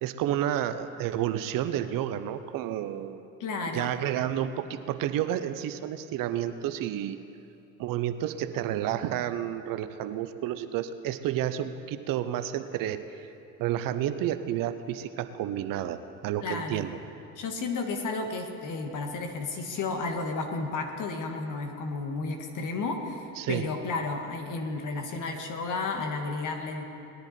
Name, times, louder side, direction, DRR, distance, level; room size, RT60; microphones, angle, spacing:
voice 1, 0.0-3.2 3.7-7.2 7.8-13.3 13.6-17.0 23.4-23.7, right 11 dB, 55° right, 11 dB, 0.8 m, -30 dB
voice 2, 3.4-3.9 16.4-16.9 17.4-26.8, left 3 dB, 50° left, 4 dB, 1.8 m, -32 dB
19.5 x 10.5 x 4.4 m, 2.7 s
hypercardioid pair, 70°, 40 cm